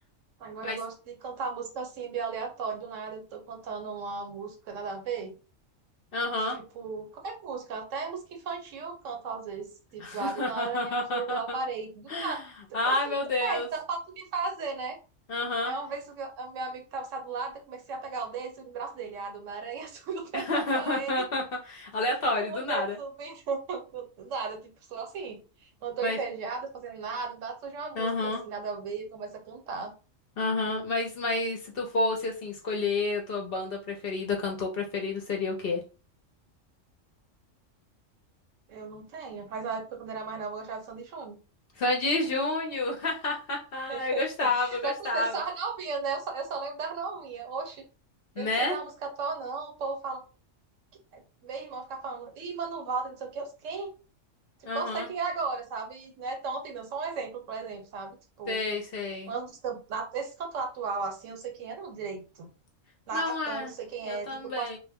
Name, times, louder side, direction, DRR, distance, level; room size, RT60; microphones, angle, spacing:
voice 1, 0.4-5.3 6.5-12.4 12.7-13.1 13.4-15.0 15.6-21.3 22.4-25.4 25.8-29.9 38.7-41.4 43.9-44.2 44.5-47.8 48.4-50.2 51.1-53.9 54.7-58.6 59.3-62.5 63.1-64.3 64.6-64.8, right 4 dB, 80° right, 4 dB, 1.0 m, -35 dB
voice 2, 6.1-6.6 10.0-11.6 12.1-12.4 12.7-13.7 15.3-15.7 20.3-23.0 26.0-26.2 28.0-28.4 30.4-35.8 41.8-45.3 48.4-48.8 54.7-55.1 58.5-59.3 63.1-63.7 64.0-64.8, left 2 dB, 55° left, 1 dB, 0.7 m, -29 dB
2.2 x 2.1 x 3.4 m, 0.34 s
omnidirectional pair, 1.3 m